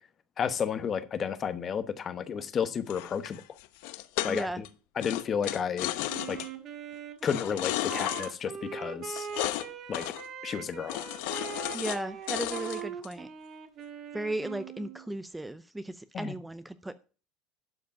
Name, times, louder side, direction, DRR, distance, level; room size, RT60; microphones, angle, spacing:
voice 1, 0.4-3.4 4.2-4.7 5.0-5.9 6.3-6.4 7.2-9.3 9.9-10.0 10.4-11.0 16.1-16.3, left 7 dB, 30° left, 1.0 m, -32 dB
sound 1, 2.9-4.7 5.0-6.5 7.2-8.3 9.2-9.7 9.9-10.3 10.9-12.0 12.3-13.1, left 16 dB, 75° left, 0.8 m, -34 dB
voice 2, 4.3-4.6 11.7-13.3 14.1-17.0, right 1 dB, 5° right, 0.5 m, -36 dB
Wind instrument woodwind instrument, 6.1-15.1, right 8 dB, 40° right, 1.5 m, -41 dB
11.5 x 5.0 x 5.7 m
supercardioid pair, 130°, 0 cm